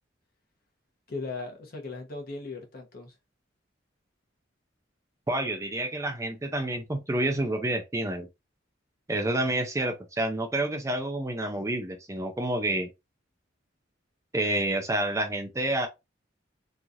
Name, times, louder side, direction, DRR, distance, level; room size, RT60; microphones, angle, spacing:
voice 1, 1.1-3.1, left 3 dB, 50° left, 0.9 m, -38 dB
voice 2, 5.3-8.3 9.1-12.9 14.3-15.9, right 1 dB, 15° right, 0.4 m, -29 dB
3.0 x 2.4 x 2.4 m
head